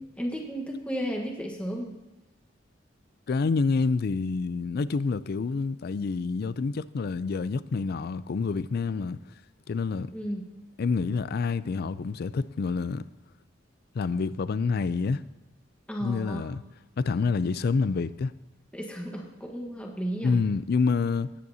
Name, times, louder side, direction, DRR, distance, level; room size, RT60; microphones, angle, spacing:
voice 1, 0.0-1.9 10.1-10.5 15.9-16.5 18.7-20.4, equal, 5° left, 1.3 m, -34 dB
voice 2, 3.3-9.2 9.7-10.1 10.8-13.0 13.9-15.2 16.0-16.6 17.0-18.3 20.2-21.3, left 4 dB, 55° left, 0.4 m, -27 dB
18.5 x 9.4 x 2.8 m
head